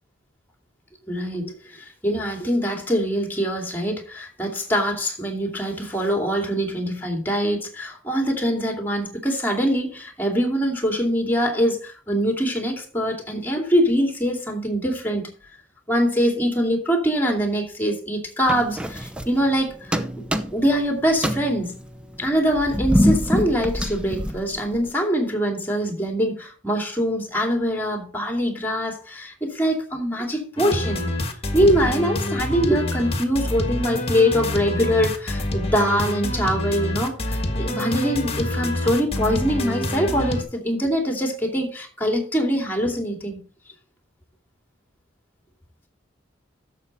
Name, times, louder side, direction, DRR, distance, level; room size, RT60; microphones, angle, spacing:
voice 1, 1.1-15.3 15.9-20.0 20.5-21.7 22.2-31.1 31.5-43.4, equal, 10° left, 2.5 m, -23 dB
sound 1, 18.5-19.6 19.9-20.8 21.1-24.9, equal, 5° right, 0.7 m, -24 dB
sound 2, 30.6-40.4, left 1 dB, 30° left, 1.6 m, -27 dB
11.5 x 7.5 x 4.1 m
head